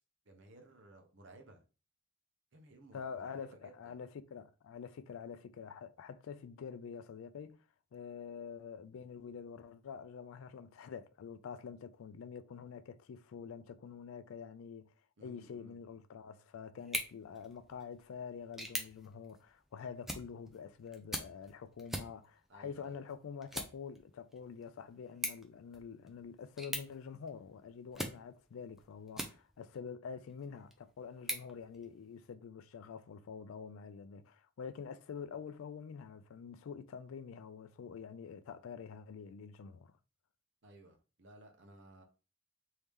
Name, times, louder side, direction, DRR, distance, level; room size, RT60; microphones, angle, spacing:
voice 1, 0.3-1.6 2.5-4.0 15.2-15.8 22.5-23.1 40.6-42.0, right 1 dB, 60° right, 0.7 m, -58 dB
voice 2, 2.9-7.6 7.9-14.9 15.2-39.9, left 6 dB, 75° left, 0.3 m, -47 dB
sound 1, 16.8-29.8 30.3-32.3, equal, ahead, 0.3 m, -45 dB
3.2 x 2.7 x 3.4 m
head